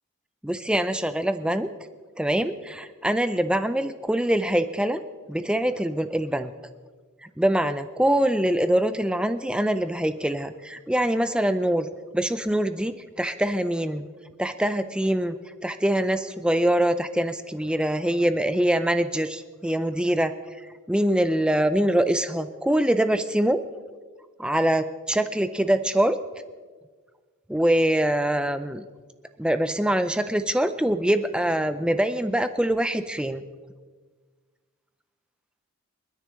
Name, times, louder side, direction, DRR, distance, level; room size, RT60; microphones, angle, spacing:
voice 1, 0.4-1.7 2.2-5.0 5.3-6.5 7.2-11.9 12.1-14.1 14.4-20.3 20.6-23.6 24.4-26.2 27.5-28.9 29.4-33.4, right 1 dB, 5° right, 10 dB, 0.4 m, -24 dB
29.0 x 10.0 x 3.2 m, 1.5 s
head